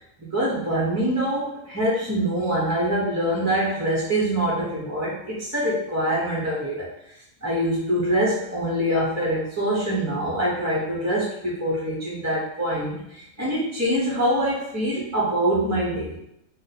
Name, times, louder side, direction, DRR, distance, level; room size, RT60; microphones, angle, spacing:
voice 1, 0.2-6.9 7.4-16.2, right 1 dB, 25° right, -6 dB, 0.4 m, -24 dB
2.6 x 2.1 x 4.0 m, 0.77 s
omnidirectional pair, 1.4 m